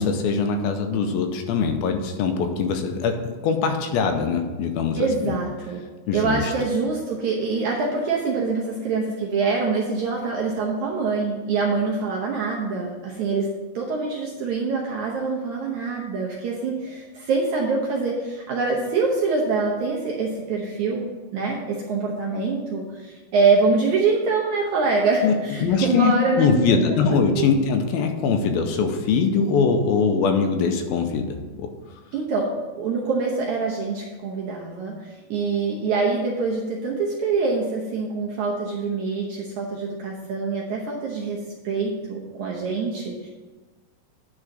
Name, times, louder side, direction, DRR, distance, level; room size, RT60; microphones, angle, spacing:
voice 1, 0.0-5.3 6.1-6.5 25.2-25.3 25.6-31.7, left 5 dB, 80° left, 5 dB, 2.4 m, -22 dB
voice 2, 5.0-5.8 6.1-21.1 21.3-27.5 28.7-28.8 32.1-43.3, right 4 dB, 75° right, -2 dB, 1.8 m, -25 dB
9.7 x 4.4 x 6.4 m, 1.3 s
omnidirectional pair, 4.4 m